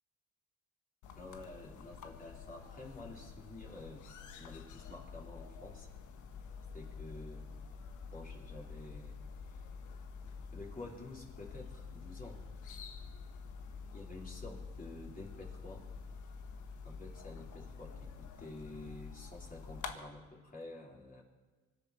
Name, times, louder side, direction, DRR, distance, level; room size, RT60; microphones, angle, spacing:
sound 1, 1.0-19.9, left 5 dB, 80° left, 1.4 m, -48 dB
voice 1, 1.2-4.1 4.3-5.9 6.7-7.4 8.1-9.1 9.5-9.6 10.5-12.4 13.9-15.9 16.8-21.2, left 2 dB, 30° left, -3 dB, 4.1 m, -50 dB
25.0 x 11.5 x 4.3 m, 1.3 s
cardioid pair, 90°, 30 cm